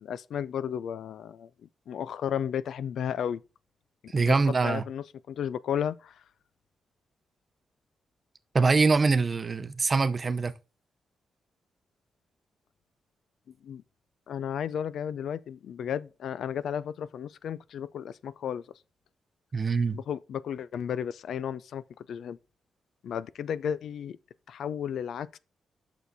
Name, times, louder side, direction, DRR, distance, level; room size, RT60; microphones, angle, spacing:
voice 1, 0.0-3.4 4.0-6.2 13.6-13.8 14.3-18.6 19.9-22.4 23.0-24.2 24.5-25.4, left 8 dB, 80° left, 0.4 m, -33 dB
voice 2, 4.1-4.8 8.5-10.5 19.5-20.0, right 4 dB, 35° right, 0.7 m, -24 dB
8.0 x 6.3 x 4.0 m
cardioid pair, 100°, 0 cm